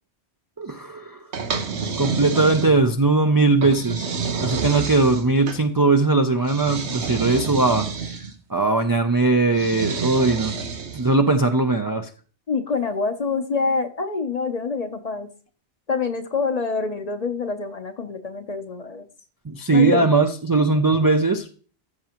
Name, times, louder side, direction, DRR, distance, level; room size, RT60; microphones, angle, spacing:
voice 1, 0.6-1.2 2.0-4.1 4.4-8.2 8.5-10.5 10.9-12.1 19.5-21.5, right 3 dB, 30° right, 5 dB, 0.4 m, -19 dB
sound 1, 1.3-3.0 3.6-5.6 6.4-8.3 9.5-11.1, right 5 dB, 80° right, 1.3 m, -29 dB
voice 2, 12.5-15.3 15.9-19.0 19.7-20.1, left 4 dB, 40° left, 7 dB, 0.7 m, -26 dB
14.5 x 5.9 x 2.9 m, 0.41 s
omnidirectional pair, 1.1 m